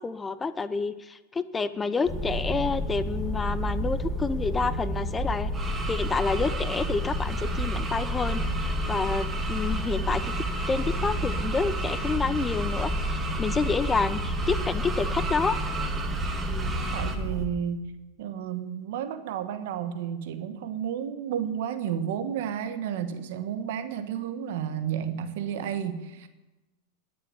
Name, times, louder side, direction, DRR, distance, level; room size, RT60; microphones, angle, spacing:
voice 1, 0.0-10.3 10.7-15.6, left 4 dB, 15° left, 14 dB, 0.6 m, -29 dB
sound 1, 2.0-17.5, equal, ahead, 2.4 m, -30 dB
sound 2, 5.5-17.2, right 4 dB, 20° right, 1.6 m, -35 dB
voice 2, 16.9-17.9 18.2-26.3, right 8 dB, 70° right, 10 dB, 1.2 m, -32 dB
12.0 x 6.9 x 9.8 m, 1.1 s
hypercardioid pair, 110°, 0 cm